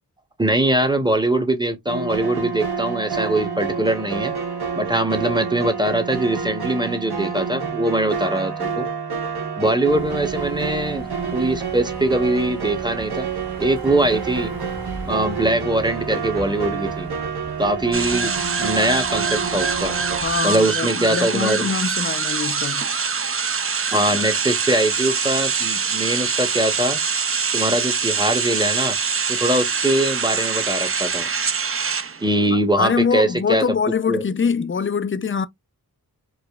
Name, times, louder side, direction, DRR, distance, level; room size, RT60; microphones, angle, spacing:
voice 1, 0.4-4.4 4.8-8.9 9.6-13.3 13.6-14.5 15.1-17.1 17.6-18.3 18.6-19.9 20.4-21.7 23.9-27.0 27.5-29.0 29.3-31.3 32.2-33.6 34.1-34.2, right 1 dB, 10° right, 0.8 m, -22 dB
sound 1, 1.9-20.2, right 6 dB, 85° right, 1.0 m, -28 dB
sound 2, 9.9-20.4, right 1 dB, 65° right, 1.5 m, -39 dB
sound 3, 17.9-32.5, right 5 dB, 35° right, 0.5 m, -24 dB
voice 2, 20.2-22.8 32.5-35.5, left 5 dB, 35° left, 0.4 m, -23 dB
4.7 x 2.4 x 2.3 m
wide cardioid pair, 55°, 37 cm